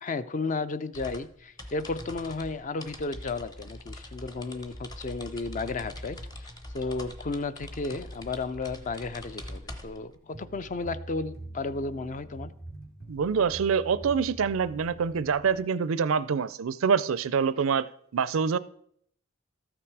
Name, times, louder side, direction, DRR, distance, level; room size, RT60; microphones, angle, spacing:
voice 1, 0.0-6.5 6.7-12.5, left 3 dB, 40° left, 0.4 m, -33 dB
sound 1, 0.9-10.2, left 1 dB, 20° left, 0.8 m, -43 dB
sound 2, 10.3-15.6, right 1 dB, 80° left, 3.4 m, -44 dB
voice 2, 13.1-17.9 18.1-18.6, right 6 dB, 80° right, 0.4 m, -25 dB
13.5 x 6.0 x 4.7 m
head